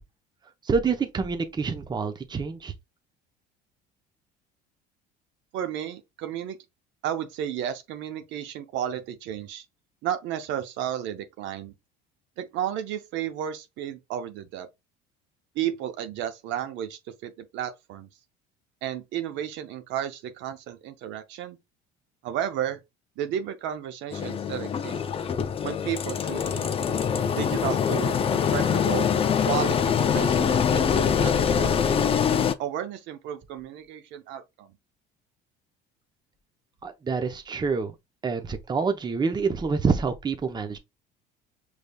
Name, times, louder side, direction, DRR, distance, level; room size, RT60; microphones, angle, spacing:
voice 1, 0.6-2.7 36.8-37.9 38.2-40.8, right 5 dB, 20° right, 0.6 m, -27 dB
voice 2, 5.5-6.6 7.0-9.6 10.0-11.7 12.4-14.7 15.5-18.1 18.8-21.6 22.2-22.8 23.2-25.0 25.6-26.7 27.3-29.1 29.4-31.9 32.6-34.8, right 10 dB, 65° right, 0.6 m, -33 dB
Engine, 24.1-32.5, left 7 dB, 30° left, 0.4 m, -24 dB
5.1 x 3.3 x 2.2 m
supercardioid pair, 95°, 21 cm